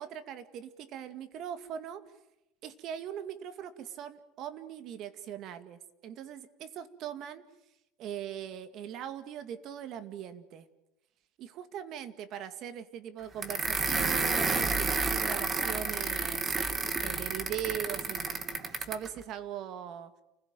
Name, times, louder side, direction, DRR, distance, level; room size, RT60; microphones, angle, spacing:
voice 1, 0.0-2.0 2.6-7.4 8.0-10.7 11.4-20.1, right 9 dB, 50° right, 11 dB, 2.2 m, -40 dB
sound 1, 13.4-19.1, right 4 dB, 25° right, 2.6 m, -30 dB
29.0 x 16.5 x 9.1 m, 0.92 s
supercardioid pair, 115°, 0 cm